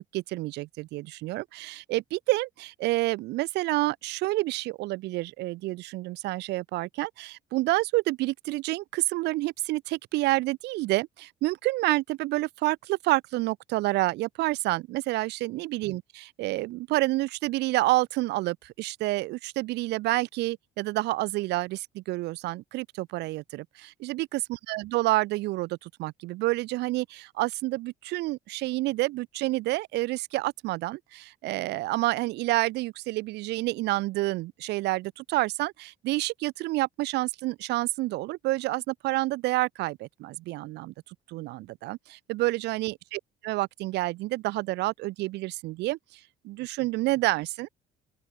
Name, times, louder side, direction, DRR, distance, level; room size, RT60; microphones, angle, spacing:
voice 1, 0.0-40.9 41.3-46.2 46.4-47.7, right 19 dB, 85° right, 2.1 m, -29 dB
open air
cardioid pair, 110°, 17 cm